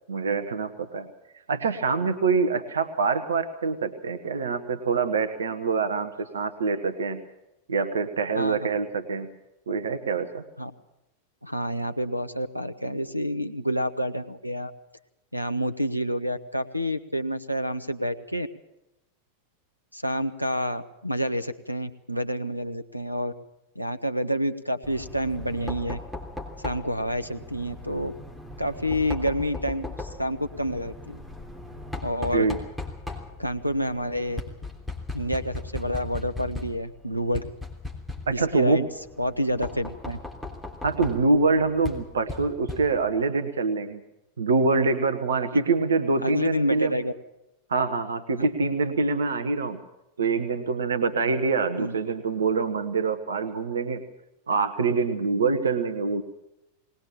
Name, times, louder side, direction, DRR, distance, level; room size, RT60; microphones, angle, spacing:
voice 1, 0.1-1.1 1.5-7.2 7.7-9.3 9.7-10.4 32.3-32.6 38.3-38.8 40.8-44.0 44.4-47.0 47.7-49.8 50.2-54.0 54.5-56.2, right 4 dB, 70° right, 8 dB, 1.2 m, -25 dB
voice 2, 11.4-14.7 15.3-18.5 19.9-23.3 23.7-26.0 26.6-28.1 28.6-31.2 32.0-32.5 33.4-34.4 35.1-37.4 38.3-38.9 39.2-40.2 46.2-47.1 51.8-51.9, equal, 90° right, 11 dB, 1.0 m, -28 dB
Knock, 24.8-43.2, left 3 dB, 5° left, 3.3 m, -38 dB
20.5 x 19.5 x 7.3 m, 0.88 s
figure-of-eight pair, 90°, 0 cm